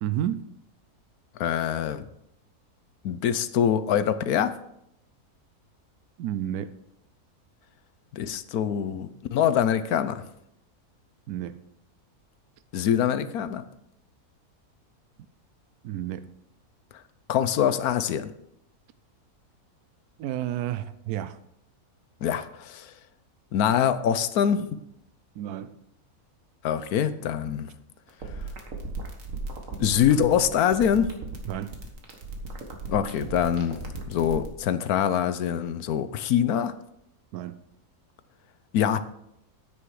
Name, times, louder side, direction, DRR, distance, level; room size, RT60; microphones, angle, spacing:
voice 1, 0.0-0.4 6.2-6.7 11.3-11.6 15.8-16.3 20.2-21.4 25.4-25.8 31.5-31.7 37.3-37.6, right 11 dB, 80° right, 13 dB, 1.1 m, -31 dB
voice 2, 1.4-2.1 3.0-4.5 8.1-10.2 12.7-13.6 17.3-18.3 22.2-22.9 23.5-24.7 26.6-27.7 29.8-31.2 32.9-36.7 38.7-39.0, left 9 dB, 75° left, 13 dB, 1.2 m, -24 dB
sound 1, 28.1-34.5, right 3 dB, 60° right, 1.8 m, -36 dB
9.7 x 8.6 x 4.7 m, 0.77 s
omnidirectional pair, 1.6 m